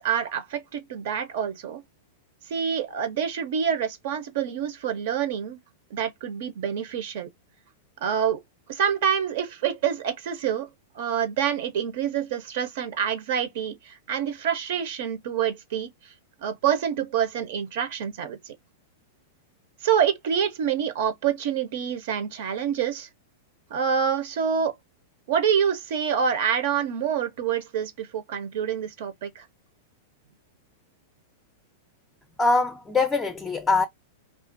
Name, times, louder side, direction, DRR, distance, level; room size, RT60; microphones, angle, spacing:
voice 1, 0.0-1.8 2.5-5.6 5.9-7.3 8.0-8.4 8.7-10.7 10.9-15.9 16.4-18.5 19.8-23.1 23.7-24.7 25.3-29.5, right 8 dB, 60° right, 0.6 m, -27 dB
voice 2, 32.4-33.9, left 3 dB, 15° left, 0.4 m, -23 dB
2.4 x 2.3 x 2.5 m
hypercardioid pair, 105°, 0 cm